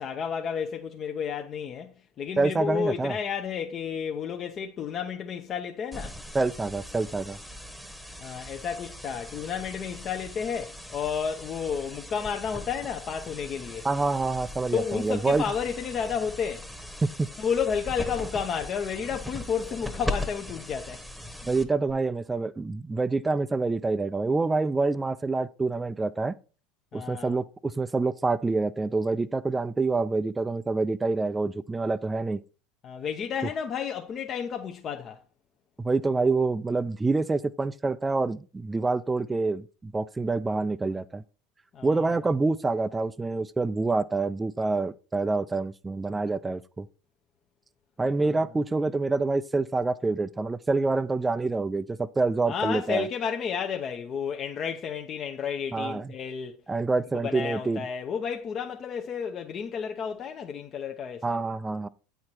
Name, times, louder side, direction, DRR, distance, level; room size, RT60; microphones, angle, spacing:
voice 1, 0.0-6.2 8.2-13.9 14.7-16.7 17.4-21.0 26.9-27.4 32.8-35.2 41.7-42.2 48.3-48.4 52.5-56.6 57.2-61.4, left 7 dB, 40° left, 0.7 m, -31 dB
voice 2, 2.4-3.2 6.3-7.4 13.8-15.4 17.0-17.3 21.4-26.3 26.9-32.4 35.8-41.2 41.8-46.9 48.0-53.1 55.7-56.1 56.7-57.8 61.2-61.9, right 3 dB, 15° right, 0.4 m, -27 dB
sound 1, 5.9-21.9, left 1 dB, ahead, 1.0 m, -39 dB
8.4 x 4.6 x 4.4 m
hypercardioid pair, 90°, 0 cm